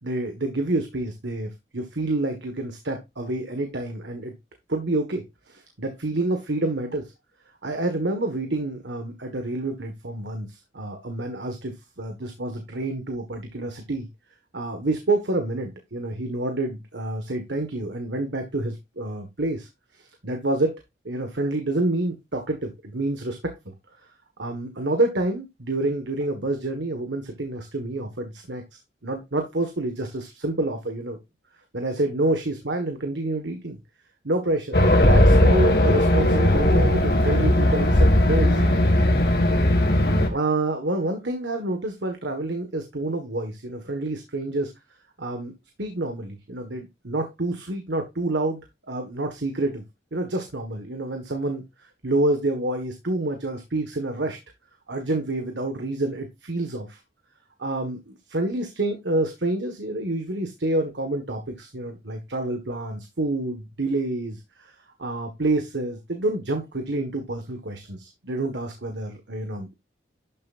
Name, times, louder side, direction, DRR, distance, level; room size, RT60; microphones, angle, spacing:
voice 1, 0.0-4.3 4.7-7.0 7.6-14.1 14.5-19.7 20.2-23.7 24.4-28.6 29.0-31.2 31.7-33.8 34.2-38.8 40.3-44.7 45.2-45.5 45.8-48.6 48.9-49.8 50.1-54.4 54.9-57.0 57.6-69.8, right 2 dB, 80° right, 5 dB, 1.6 m, -28 dB
Race car auto racing, 34.7-40.3, left 1 dB, 60° left, 2.2 m, -18 dB
12.0 x 7.5 x 2.6 m, 0.23 s
head